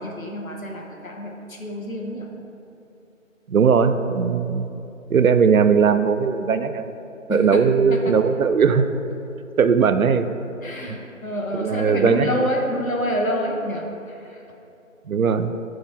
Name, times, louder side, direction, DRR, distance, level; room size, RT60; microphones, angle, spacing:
voice 1, 0.0-2.3 7.3-7.6 7.9-8.2 10.6-14.4, equal, 85° left, 1 dB, 1.2 m, -27 dB
voice 2, 3.5-4.7 5.1-6.9 7.3-8.9 9.6-10.3 11.5-12.4 15.1-15.5, right 6 dB, 90° right, 10 dB, 0.5 m, -19 dB
6.2 x 4.2 x 4.6 m, 2.9 s
figure-of-eight pair, 165°, 40 cm